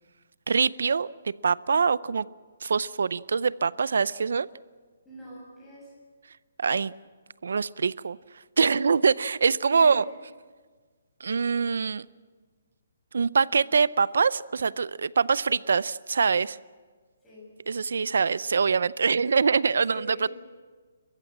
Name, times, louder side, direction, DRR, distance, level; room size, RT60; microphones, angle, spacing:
voice 1, 0.5-2.3 2.6-4.5 6.6-6.9 7.4-8.2 8.6-10.0 11.2-12.0 13.1-16.6 17.7-20.0, right 5 dB, 70° right, 20 dB, 0.6 m, -24 dB
voice 2, 5.0-5.9 9.7-10.1 17.2-17.5 19.2-19.3 19.9-20.3, left 1 dB, 5° left, -6 dB, 7.2 m, -43 dB
29.5 x 15.0 x 7.4 m, 1.5 s
hypercardioid pair, 175°, 0 cm